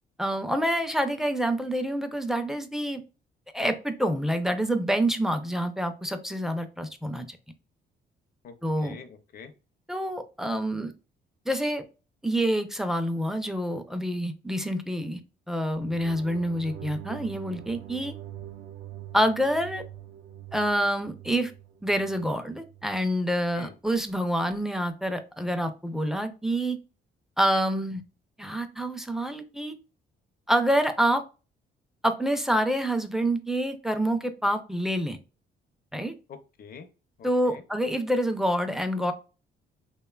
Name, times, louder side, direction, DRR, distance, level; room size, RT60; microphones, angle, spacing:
voice 1, 0.2-3.0 3.5-7.4 8.6-9.0 9.9-10.9 11.5-11.8 12.2-15.2 15.5-18.1 19.1-19.8 20.5-21.5 21.8-26.8 27.4-28.0 28.4-29.7 30.5-31.2 32.0-35.2 35.9-36.1 37.2-39.1, equal, ahead, 7 dB, 0.3 m, -27 dB
voice 2, 8.4-9.5 23.5-23.8 36.3-36.9 37.2-37.6, left 6 dB, 50° left, 8 dB, 0.5 m, -45 dB
sound 1, 15.7-23.0, right 11 dB, 85° right, 0.4 m, -44 dB
3.0 x 2.2 x 2.2 m, 0.32 s
cardioid pair, 90°, 20 cm